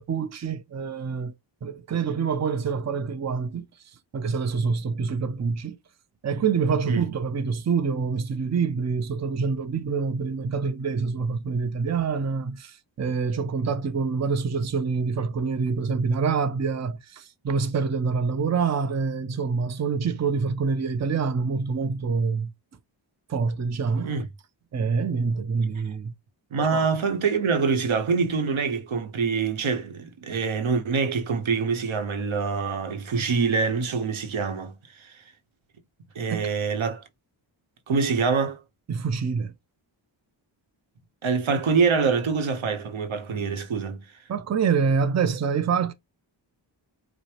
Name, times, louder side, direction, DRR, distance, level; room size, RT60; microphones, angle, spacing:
voice 1, 0.0-1.3 1.6-3.6 4.1-5.8 6.2-22.5 23.3-24.2 24.7-26.1 26.7-26.8 36.3-36.5 38.9-39.5 44.3-45.9, right 5 dB, 35° right, 0.6 m, -26 dB
voice 2, 26.5-35.1 36.1-37.0 37.9-38.6 41.2-44.0, right 5 dB, 90° right, 0.9 m, -25 dB
4.9 x 2.1 x 2.9 m
wide cardioid pair, 95°, 47 cm